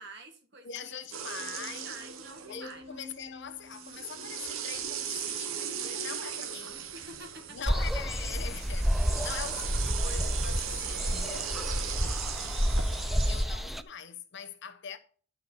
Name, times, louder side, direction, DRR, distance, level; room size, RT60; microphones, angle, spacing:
voice 1, 0.0-0.9 1.3-2.9 6.9-7.7, right 2 dB, 55° right, 1.9 m, -48 dB
voice 2, 0.6-2.0 2.5-6.9 7.5-11.6 12.3-15.0, left 7 dB, 55° left, 0.9 m, -43 dB
sound 1, 1.1-2.9 3.7-13.4, right 8 dB, 75° right, 1.0 m, -38 dB
sound 2, 1.4-6.3, left 2 dB, 30° right, 1.9 m, -52 dB
sound 3, 7.7-13.8, equal, ahead, 0.3 m, -30 dB
11.0 x 4.8 x 5.6 m
head